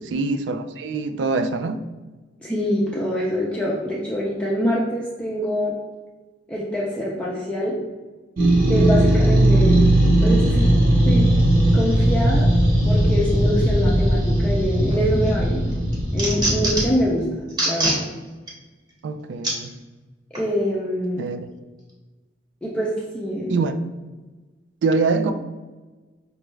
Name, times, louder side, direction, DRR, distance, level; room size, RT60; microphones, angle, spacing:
voice 1, 0.1-1.9 9.4-9.5 19.0-19.7 21.2-21.5 22.6-22.7 23.5-23.7 24.8-25.3, right 3 dB, 70° right, 9 dB, 0.3 m, -24 dB
voice 2, 2.4-5.7 6.5-7.8 8.7-9.8 10.2-10.7 11.1-11.3 11.7-12.5 12.8-15.7 16.1-18.0 20.3-21.2 22.6-23.5, equal, 5° left, -5 dB, 0.5 m, -25 dB
sound 1, 8.4-16.9, right 1 dB, 50° right, 1.2 m, -18 dB
sound 2, 14.9-15.3 15.7-17.0 17.5-18.0 18.5-18.6 19.4-19.6 20.3-20.5, right 1 dB, 25° right, 1.0 m, -24 dB
5.1 x 2.3 x 3.1 m, 1.3 s
head